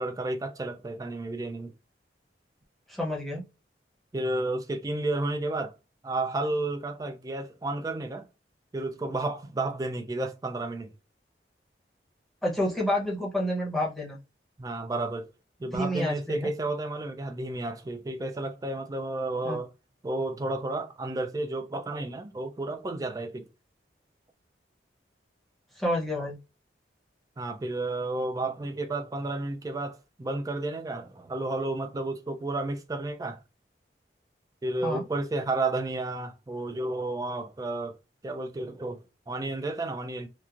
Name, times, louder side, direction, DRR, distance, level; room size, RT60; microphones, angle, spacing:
voice 1, 0.0-1.7 4.1-5.7 6.0-8.2 8.7-10.9 14.6-15.3 15.6-19.7 20.0-23.5 27.4-33.4 34.6-38.0 38.2-40.3, right 2 dB, 20° right, 0.3 m, -32 dB
voice 2, 2.9-3.4 12.4-14.2 15.7-16.5 19.4-19.6 25.8-26.4 34.8-35.0, left 1 dB, ahead, 0.7 m, -29 dB
2.9 x 2.4 x 2.4 m
head